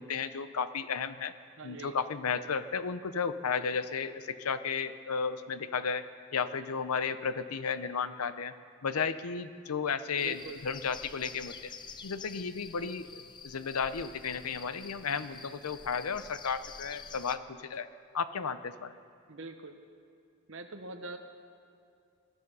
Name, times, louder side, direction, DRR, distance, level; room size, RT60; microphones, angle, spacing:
voice 1, 0.0-1.3 1.6-6.0 6.3-8.5 8.8-11.7 12.0-17.9 18.1-18.9, left 6 dB, 85° left, 13 dB, 0.7 m, -33 dB
voice 2, 1.6-2.0 10.2-10.6 19.3-19.7 20.5-21.2, right 3 dB, 60° right, 5 dB, 0.9 m, -43 dB
sound 1, 10.2-17.4, left 5 dB, 20° left, 0.4 m, -48 dB
20.5 x 12.0 x 5.5 m, 2.4 s
head